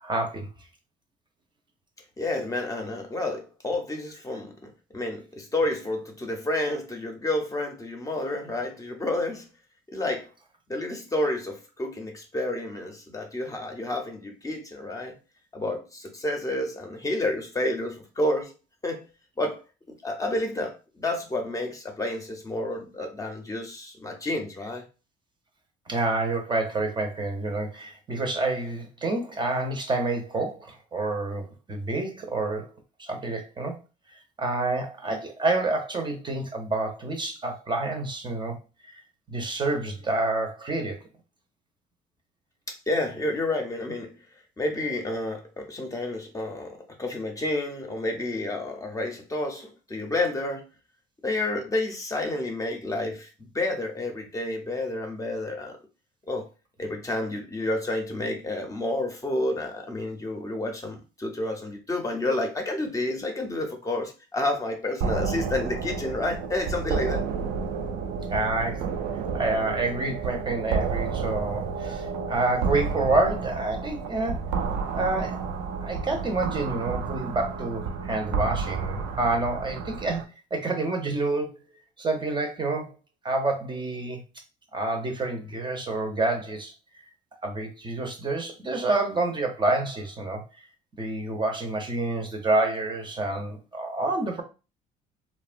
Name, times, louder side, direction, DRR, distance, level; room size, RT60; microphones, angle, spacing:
voice 1, 0.0-0.5 25.9-32.7 33.0-33.8 34.4-38.6 38.8-38.9 39.3-41.1 68.3-68.9 69.3-74.5 74.9-75.5 75.8-80.2 80.5-81.6 82.0-82.9 83.2-84.2 84.7-86.7 87.4-90.4 91.0-94.4, right 2 dB, 25° right, 0.6 m, -28 dB
voice 2, 2.2-9.5 9.9-10.3 10.7-15.1 15.5-18.5 18.8-19.0 19.4-19.6 20.0-24.8 42.7-44.2 44.6-50.7 51.2-55.8 56.3-56.5 56.8-67.2, left 2 dB, 20° left, 0.6 m, -30 dB
sound 1, 65.0-80.2, right 5 dB, 85° right, 0.4 m, -31 dB
2.7 x 2.1 x 2.5 m
cardioid pair, 110°, 17 cm